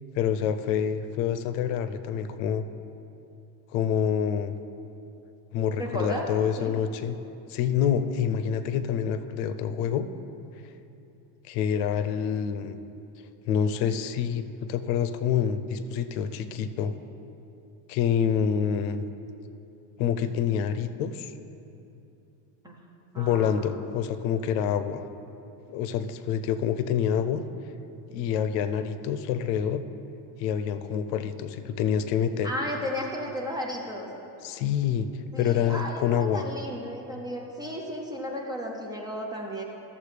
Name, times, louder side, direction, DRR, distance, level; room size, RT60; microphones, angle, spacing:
voice 1, 0.2-2.6 3.7-4.5 5.5-7.2 7.5-10.1 11.5-12.8 13.5-16.9 17.9-19.1 20.0-21.3 23.2-25.0 25.7-27.4 28.1-29.8 30.4-32.5 34.4-35.1 35.4-36.5, left 8 dB, 85° left, 11 dB, 0.6 m, -27 dB
voice 2, 5.8-6.3 6.6-6.8 22.6-22.8 23.1-23.7 32.4-34.1 35.3-39.6, equal, 10° right, -1 dB, 0.5 m, -34 dB
13.0 x 7.3 x 3.3 m, 2.7 s
cardioid pair, 160°, 47 cm